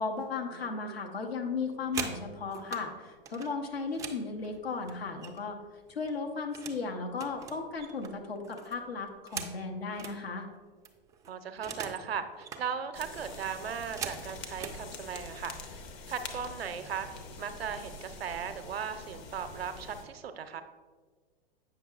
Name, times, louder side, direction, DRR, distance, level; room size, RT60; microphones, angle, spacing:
voice 1, 0.0-5.6 5.9-10.5, left 4 dB, 80° left, 4 dB, 0.9 m, -35 dB
voice 2, 0.5-1.0 11.3-20.6, right 7 dB, 80° right, 9 dB, 0.6 m, -38 dB
sound 1, 1.6-2.9 3.3-5.6 5.9-6.8 7.1-10.2 10.6-10.7 10.8-12.1 12.3-12.7 13.2-14.8 15.6-15.8 16.1-16.5 16.8-17.3, right 6 dB, 10° right, 0.3 m, -42 dB
sound 2, 12.9-20.0, left 3 dB, 35° left, 0.7 m, -45 dB
8.1 x 5.7 x 2.3 m, 1.5 s
figure-of-eight pair, 100°, 30 cm